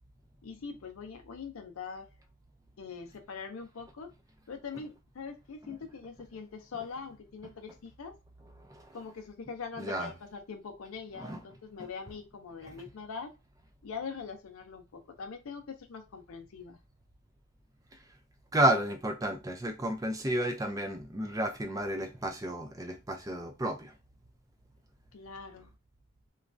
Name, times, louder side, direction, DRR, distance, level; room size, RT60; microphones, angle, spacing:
voice 1, 0.4-2.1 2.8-4.1 4.5-8.2 8.9-13.3 13.8-16.8 25.1-25.7, left 5 dB, 90° left, 0.5 m, -43 dB
voice 2, 9.8-10.1 11.2-11.4 18.5-23.9, right 1 dB, 15° right, 0.4 m, -31 dB
3.1 x 2.3 x 2.5 m
head